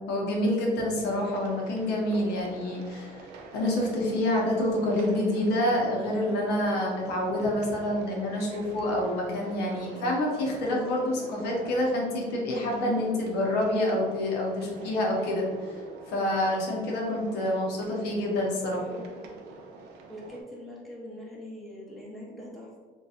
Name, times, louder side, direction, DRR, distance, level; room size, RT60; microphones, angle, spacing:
voice 1, 0.1-3.3 3.5-15.8 16.1-18.9, left 1 dB, 80° left, -2 dB, 0.7 m, -27 dB
sound 1, 1.0-20.4, right 4 dB, 80° right, 0.4 m, -45 dB
voice 2, 20.1-22.7, left 1 dB, ahead, -6 dB, 0.7 m, -42 dB
2.7 x 2.3 x 2.3 m, 1.5 s
cardioid pair, 110°, 17 cm